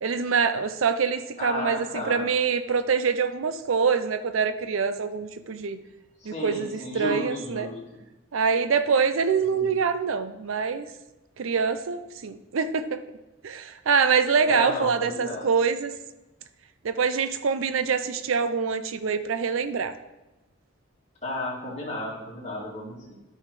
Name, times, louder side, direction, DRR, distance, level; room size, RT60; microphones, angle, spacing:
voice 1, 0.0-5.8 6.2-7.7 8.3-10.9 11.4-13.0 13.4-15.9 16.8-19.9, right 5 dB, 70° right, 11 dB, 0.5 m, -25 dB
voice 2, 1.4-2.2 6.2-7.8 9.5-9.7 14.4-15.4 21.2-23.1, left 1 dB, 35° left, -4 dB, 2.4 m, -33 dB
13.0 x 5.6 x 3.2 m, 1.0 s
head